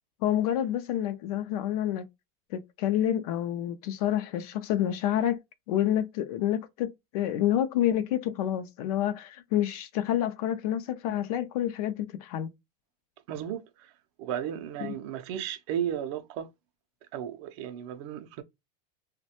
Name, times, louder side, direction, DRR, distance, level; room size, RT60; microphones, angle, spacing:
voice 1, 0.2-2.0 2.5-5.4 5.7-12.5 14.8-15.0, left 11 dB, 75° left, 0.4 m, -28 dB
voice 2, 13.3-13.9 14.2-16.5 17.1-18.4, right 10 dB, 50° right, 0.4 m, -34 dB
3.0 x 2.1 x 2.7 m
supercardioid pair, 175°, 19 cm